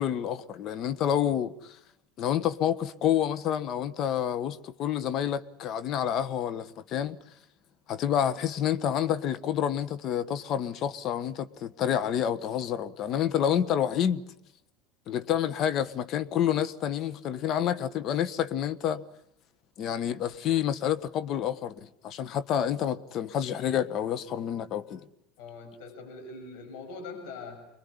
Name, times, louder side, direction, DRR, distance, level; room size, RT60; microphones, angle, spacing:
voice 1, 0.0-1.8 2.2-7.2 7.9-14.2 15.1-19.0 19.8-25.0, left 9 dB, 50° left, 1.4 m, -28 dB
voice 2, 25.4-27.6, left 3 dB, 65° left, 6.8 m, -42 dB
26.0 x 22.0 x 9.9 m
hypercardioid pair, 95°, 0 cm